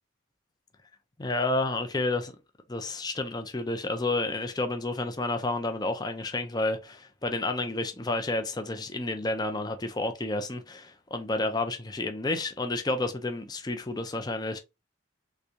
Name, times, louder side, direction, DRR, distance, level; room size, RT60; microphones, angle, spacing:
voice 1, 1.2-2.3 2.7-14.6, left 2 dB, 20° left, 0.5 m, -30 dB
3.4 x 3.2 x 2.6 m
head